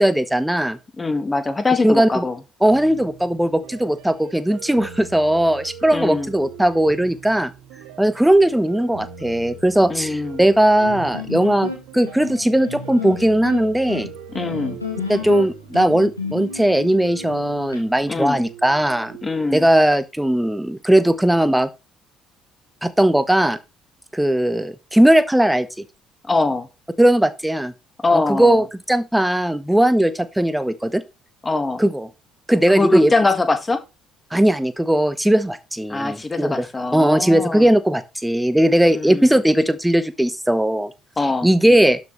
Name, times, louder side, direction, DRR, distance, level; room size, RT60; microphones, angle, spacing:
voice 1, 0.0-0.8 1.8-2.2 2.6-7.5 8.0-14.1 15.1-19.1 19.5-21.7 22.8-23.6 24.1-25.7 27.0-27.7 28.1-31.0 31.8-32.1 32.5-33.1 34.3-36.7 36.9-40.9 41.4-42.0, right 1 dB, 5° right, 1.1 m, -18 dB
voice 2, 1.0-2.4 5.9-6.3 9.9-10.4 14.3-14.8 18.1-18.4 19.2-19.7 26.3-26.7 28.0-28.6 31.4-31.8 32.7-33.8 35.9-37.7 38.9-39.4 41.2-41.5, left 3 dB, 20° left, 1.7 m, -22 dB
sound 1, 2.7-19.4, right 7 dB, 65° right, 1.6 m, -41 dB
sound 2, 10.8-17.8, left 4 dB, 85° left, 1.8 m, -32 dB
12.0 x 6.3 x 3.2 m
figure-of-eight pair, 50°, 0 cm